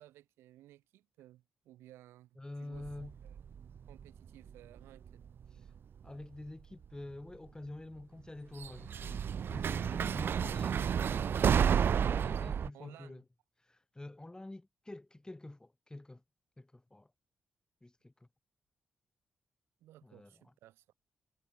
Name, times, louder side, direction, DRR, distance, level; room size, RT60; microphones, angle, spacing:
voice 1, 0.0-3.4 3.9-5.3 12.7-13.2 19.8-20.8, right 14 dB, 85° right, 7.7 m, -58 dB
voice 2, 2.4-3.1 5.5-5.7 6.0-13.2 13.6-16.2 16.6-17.1 17.8-18.3 20.0-20.5, left 2 dB, 20° left, 4.4 m, -48 dB
sound 1, 2.7-4.8 5.1-5.8 6.8-6.9 8.6-12.7, right 8 dB, 65° right, 0.7 m, -31 dB
supercardioid pair, 45°, 4 cm